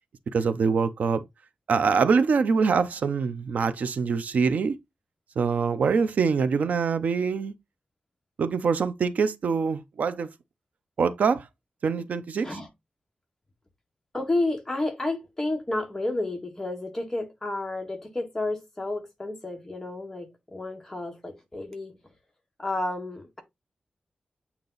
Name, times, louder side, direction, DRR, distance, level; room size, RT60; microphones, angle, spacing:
voice 1, 0.3-1.2 1.7-4.8 5.4-7.5 8.4-10.3 11.0-11.4 11.8-12.5, right 5 dB, 80° right, 0.6 m, -24 dB
voice 2, 14.1-22.0 22.6-23.4, left 2 dB, 15° left, 1.7 m, -31 dB
8.5 x 2.9 x 3.9 m
wide cardioid pair, 155°, 3 cm